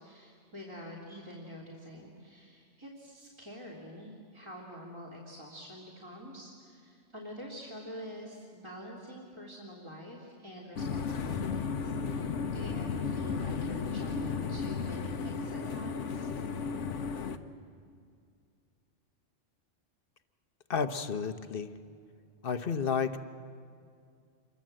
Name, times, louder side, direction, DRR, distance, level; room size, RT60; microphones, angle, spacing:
voice 1, 0.0-16.3, equal, 20° right, -4 dB, 3.3 m, -46 dB
sound 1, 10.8-17.4, left 5 dB, 75° left, 1.3 m, -34 dB
voice 2, 20.7-21.7 22.4-23.2, left 6 dB, 50° left, 10 dB, 1.1 m, -31 dB
27.5 x 23.0 x 7.7 m, 2.3 s
omnidirectional pair, 1.2 m